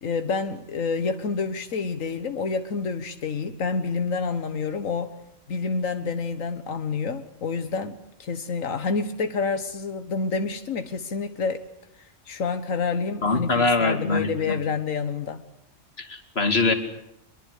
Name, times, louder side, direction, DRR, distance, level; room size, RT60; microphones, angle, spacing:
voice 1, 0.0-5.1 5.5-11.6 12.3-15.4, left 4 dB, 85° left, 8 dB, 1.7 m, -28 dB
voice 2, 13.2-14.5 16.0-16.7, left 3 dB, 50° left, 7 dB, 3.1 m, -23 dB
25.5 x 22.5 x 8.3 m, 0.82 s
omnidirectional pair, 1.3 m